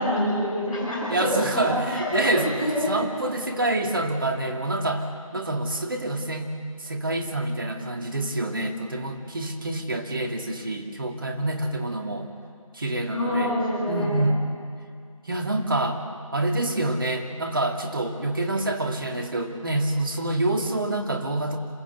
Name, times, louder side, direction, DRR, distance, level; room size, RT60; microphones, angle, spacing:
voice 1, 0.0-2.9 13.1-14.3, left 1 dB, 5° left, -19 dB, 7.7 m, -26 dB
voice 2, 1.1-5.1 5.3-12.3 12.7-13.5 13.9-14.4 15.3-16.0 16.3-21.6, right 1 dB, 40° right, 3 dB, 2.1 m, -27 dB
27.0 x 17.0 x 8.0 m, 2.2 s
figure-of-eight pair, 170°, 18 cm